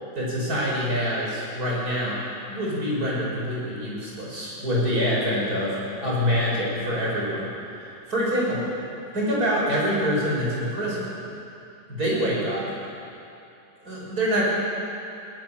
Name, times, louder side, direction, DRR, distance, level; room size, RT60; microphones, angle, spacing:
voice 1, 0.1-2.2 2.5-5.8 6.0-7.5 8.1-8.6 9.1-11.0 11.9-12.6 13.8-14.4, equal, 55° right, -5 dB, 6.5 m, -25 dB
19.5 x 19.0 x 7.5 m, 2.7 s
omnidirectional pair, 1.9 m